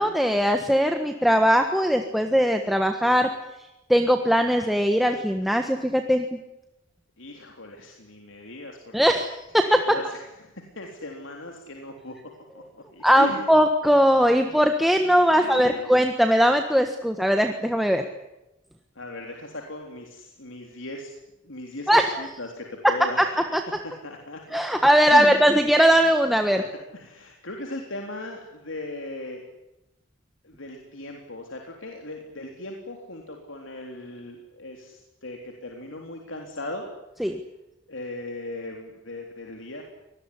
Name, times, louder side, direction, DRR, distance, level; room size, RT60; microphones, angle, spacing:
voice 1, 0.0-3.3 3.9-6.4 8.9-9.8 13.0-18.0 21.9-22.2 23.2-23.3 23.5-23.6 24.5-26.6 37.2-37.4, equal, ahead, 5 dB, 1.4 m, -20 dB
voice 2, 7.2-9.2 9.9-10.2 10.4-12.1 12.5-12.6 12.9-13.4 15.3-15.9 19.0-21.1 21.4-23.3 23.8-24.8 25.1-25.4 26.5-26.6 26.9-29.4 30.4-36.9 37.9-39.8, left 1 dB, 90° left, 2 dB, 3.7 m, -38 dB
24.5 x 20.0 x 9.9 m, 0.94 s
head